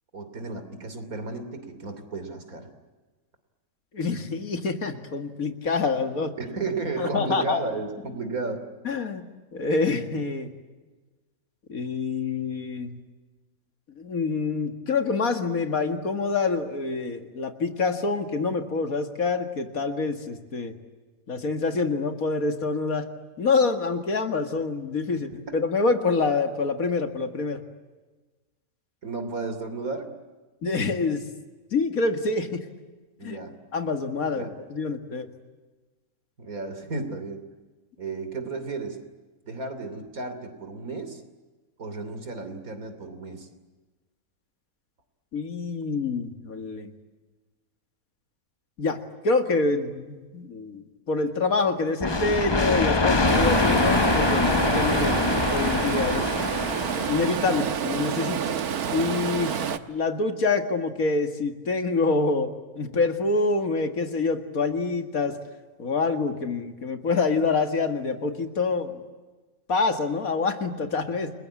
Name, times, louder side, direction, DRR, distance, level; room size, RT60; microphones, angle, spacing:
voice 1, 0.1-2.7 6.4-8.7 25.1-25.6 29.0-30.1 33.2-33.5 34.3-34.5 36.4-37.5 38.0-39.0 39.4-41.2 41.8-43.5, right 3 dB, 70° right, 9 dB, 3.5 m, -33 dB
voice 2, 3.9-6.3 7.0-7.6 8.8-9.2 9.5-10.5 11.7-13.0 14.0-20.7 21.3-23.1 23.4-27.6 30.6-31.2 31.7-32.6 33.2-33.4 33.7-35.3 45.3-46.9 48.8-55.2 55.5-56.3 57.1-58.4 58.9-59.6 59.9-65.4 65.8-69.0 69.7-71.3, left 4 dB, 70° left, 7 dB, 2.4 m, -26 dB
sound 1, 52.0-57.6, left 3 dB, 20° left, 0.9 m, -24 dB
Stream, 53.3-59.8, right 8 dB, 90° right, 1.6 m, -28 dB
30.0 x 21.0 x 8.5 m, 1.3 s
omnidirectional pair, 1.6 m